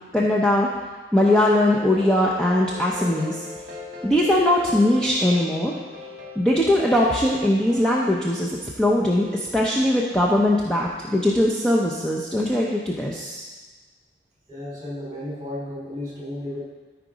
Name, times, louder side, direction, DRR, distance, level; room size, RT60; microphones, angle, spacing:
voice 1, 0.1-0.7 1.1-3.5 4.0-5.7 6.4-13.5, left 1 dB, 5° left, -4 dB, 0.6 m, -20 dB
sound 1, 1.7-8.0, left 3 dB, 45° right, 1.3 m, -40 dB
voice 2, 14.5-16.6, left 1 dB, 20° right, -5 dB, 3.1 m, -33 dB
13.0 x 4.8 x 5.0 m, 1.3 s
head